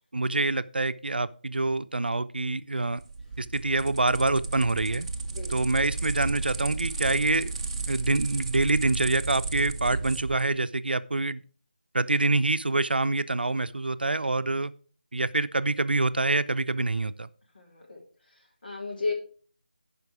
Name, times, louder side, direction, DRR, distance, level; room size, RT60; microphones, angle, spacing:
voice 1, 0.1-3.0 3.4-5.1 5.5-7.5 7.9-11.4 11.9-14.7 15.1-17.3, right 2 dB, 80° right, 13 dB, 0.5 m, -26 dB
sound 1, 2.9-10.5, right 3 dB, 35° right, 0.6 m, -33 dB
voice 2, 5.3-5.7 17.5-18.0 18.6-19.1, left 3 dB, 65° left, -1 dB, 3.4 m, -34 dB
11.0 x 5.2 x 4.8 m, 0.43 s
figure-of-eight pair, 165°, 5 cm